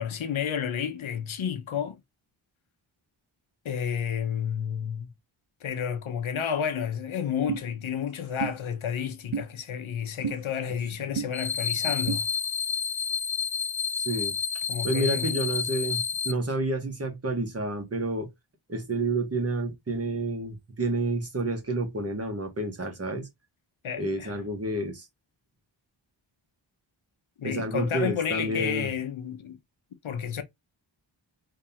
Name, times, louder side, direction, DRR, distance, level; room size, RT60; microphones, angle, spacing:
voice 1, 0.0-2.0 3.6-5.1 5.6-12.3 14.7-15.4 23.8-24.4 27.4-29.6 30.0-30.4, left 8 dB, 85° left, 0.9 m, -31 dB
sound 1, 7.5-7.6 8.4-8.5 9.3-9.5 10.2-10.4 11.2-11.3 12.1-12.2, right 6 dB, 70° right, 0.9 m, -30 dB
sound 2, 11.3-16.3, left 6 dB, 30° left, 0.4 m, -30 dB
voice 2, 14.0-14.4 14.8-18.3 18.7-23.3 24.0-25.1 27.4-28.9, right 2 dB, 30° right, 1.4 m, -29 dB
3.6 x 3.3 x 2.8 m
wide cardioid pair, 105°, 47 cm